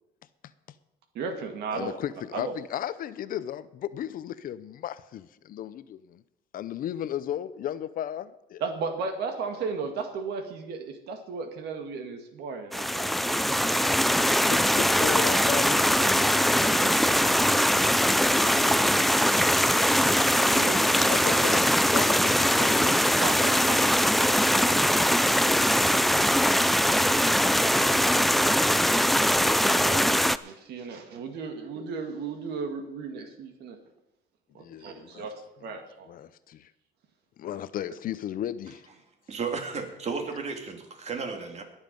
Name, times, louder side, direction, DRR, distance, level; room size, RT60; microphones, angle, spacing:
voice 1, 1.1-2.0 2.3-2.5 8.6-13.8 20.5-20.9 21.4-21.7 22.8-24.8 29.6-33.8 34.5-35.3 35.6-36.1, right 4 dB, 75° right, 6 dB, 2.0 m, -36 dB
voice 2, 1.7-6.2 6.5-8.6 14.5-17.7 18.4-18.7 20.9-23.1 24.7-26.2 34.6-35.3 35.6-35.7 36.1-36.7 37.4-38.8, left 11 dB, 55° left, 16 dB, 0.6 m, -36 dB
sound 1, 12.7-30.4, equal, ahead, 0.4 m, -22 dB
voice 3, 39.3-41.6, right 5 dB, 40° right, 4 dB, 2.5 m, -33 dB
20.0 x 7.3 x 5.3 m, 0.89 s
cardioid pair, 110°, 17 cm